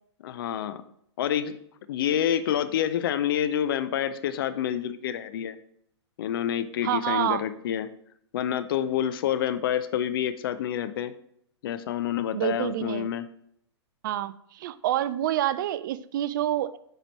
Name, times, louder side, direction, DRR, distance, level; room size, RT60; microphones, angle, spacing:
voice 1, 0.2-0.8 1.2-1.6 1.9-5.6 6.2-7.9 8.3-11.1 11.6-13.3, left 10 dB, 50° left, 12 dB, 0.5 m, -28 dB
voice 2, 6.8-7.4 12.3-13.1 14.0-16.8, right 12 dB, 45° right, 15 dB, 0.3 m, -27 dB
8.8 x 4.9 x 3.1 m, 0.70 s
figure-of-eight pair, 115°, 15 cm